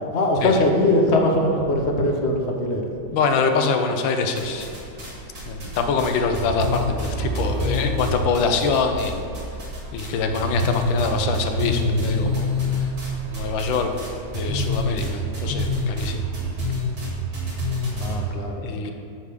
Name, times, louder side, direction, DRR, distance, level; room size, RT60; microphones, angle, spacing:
voice 1, 0.1-2.8 17.9-18.9, left 1 dB, 55° left, 1 dB, 0.8 m, -21 dB
voice 2, 3.1-4.7 5.5-9.2 9.9-12.6 13.3-13.9 14.3-16.3 18.6-18.9, left 4 dB, 85° left, 5 dB, 1.4 m, -24 dB
sound 1, 4.4-5.1 5.3-9.1 9.3-10.1 10.3-18.1, left 1 dB, 60° right, 2.6 m, -26 dB
Truck, 5.3-16.7, right 1 dB, 75° right, 0.8 m, -35 dB
9.3 x 3.6 x 6.7 m, 2.5 s
omnidirectional pair, 2.1 m